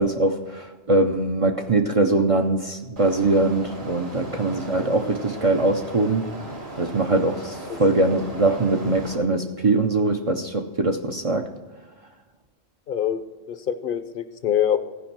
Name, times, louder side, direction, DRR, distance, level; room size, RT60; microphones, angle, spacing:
voice 1, 0.0-6.3 6.8-11.5, right 2 dB, 40° right, 5 dB, 0.6 m, -22 dB
sound 1, 3.0-9.2, right 1 dB, 65° right, 2.7 m, -37 dB
voice 2, 12.9-14.8, left 9 dB, 55° left, 12 dB, 0.8 m, -25 dB
15.5 x 5.3 x 7.3 m, 1.3 s
omnidirectional pair, 1.2 m